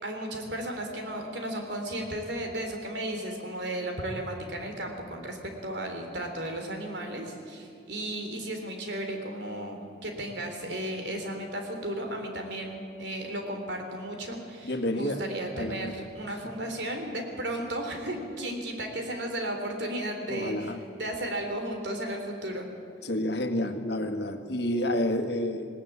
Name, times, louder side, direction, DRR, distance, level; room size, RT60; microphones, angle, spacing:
voice 1, 0.0-5.4 5.6-20.7 21.0-22.7, right 1 dB, 65° right, 4 dB, 3.6 m, -34 dB
voice 2, 14.6-15.2 15.6-15.9 16.6-16.7 20.3-20.8 23.0-25.7, left 1 dB, 60° left, 6 dB, 1.8 m, -29 dB
20.0 x 19.0 x 8.5 m, 2.4 s
head